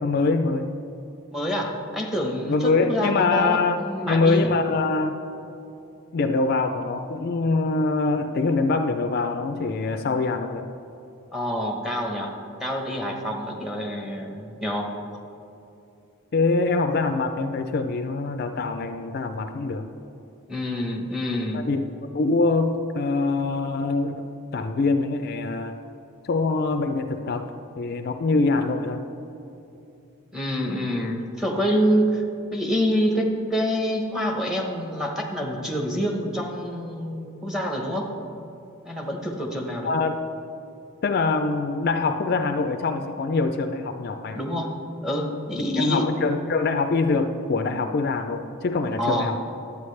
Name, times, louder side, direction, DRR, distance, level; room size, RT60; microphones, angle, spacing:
voice 1, 0.0-0.7 2.5-3.8 4.1-5.2 6.1-10.7 16.3-19.9 21.5-21.8 22.1-24.2 24.5-25.8 26.2-27.5 27.8-29.0 39.8-40.2 41.0-44.4 45.8-49.4, left 3 dB, 45° left, 7 dB, 0.3 m, -24 dB
voice 2, 1.3-4.5 11.3-12.3 12.6-14.9 20.5-21.6 30.3-32.2 32.5-38.1 38.8-39.9 44.3-44.7 45.0-46.1 49.0-49.3, equal, ahead, 1 dB, 0.8 m, -26 dB
11.0 x 8.4 x 3.2 m, 2.8 s
head